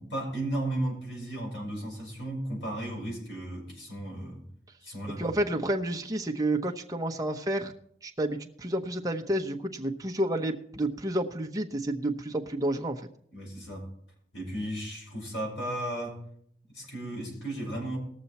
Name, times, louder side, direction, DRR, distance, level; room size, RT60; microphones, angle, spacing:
voice 1, 0.0-4.4 4.8-5.3 13.3-13.9 14.3-16.2 16.7-18.0, right 1 dB, 80° left, -2 dB, 5.7 m, -35 dB
voice 2, 5.2-7.7 8.0-13.0, right 1 dB, 20° right, 2 dB, 0.8 m, -30 dB
19.5 x 6.9 x 4.2 m, 0.68 s
head